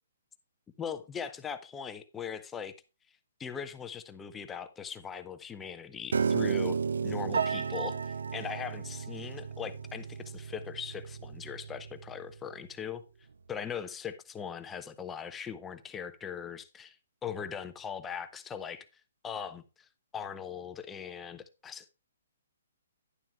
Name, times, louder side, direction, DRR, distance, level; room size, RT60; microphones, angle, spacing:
voice 1, 0.8-2.7 3.4-6.8 7.0-13.0 13.5-17.0 17.2-18.9 19.2-19.9 20.1-22.0, left 7 dB, 10° left, 0.6 m, -40 dB
Piano, 6.1-12.3, right 5 dB, 85° right, 0.5 m, -33 dB
11.0 x 10.5 x 2.3 m
hypercardioid pair, 170°, 0 cm